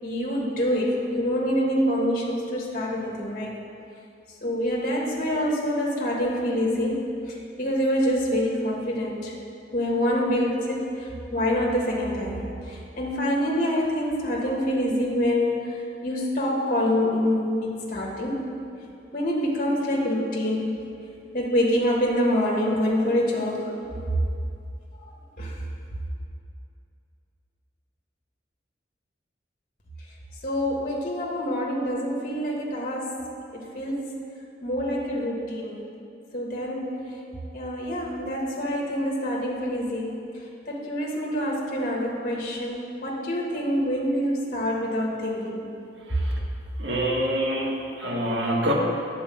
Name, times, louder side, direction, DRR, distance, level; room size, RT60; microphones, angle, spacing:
voice 1, 0.0-3.6 4.4-9.3 9.7-15.8 16.0-18.4 19.1-20.7 21.3-23.8 25.0-25.1 25.4-25.6 30.4-33.1 33.5-34.0 34.6-35.8 36.3-37.0 37.5-40.1 40.7-45.6, equal, 45° left, -3 dB, 1.5 m, -26 dB
voice 2, 46.0-46.4 46.8-48.7, right 1 dB, 75° right, -2 dB, 1.6 m, -26 dB
9.8 x 4.7 x 7.5 m, 2.6 s
head